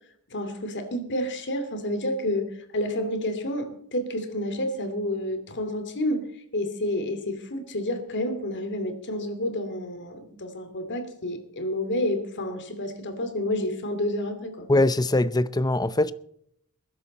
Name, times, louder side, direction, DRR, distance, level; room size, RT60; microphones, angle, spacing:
voice 1, 0.3-6.3 6.5-14.7, left 1 dB, 55° left, 2.7 m, -29 dB
voice 2, 14.7-16.1, left 2 dB, 20° left, 0.6 m, -22 dB
21.5 x 11.5 x 4.2 m
head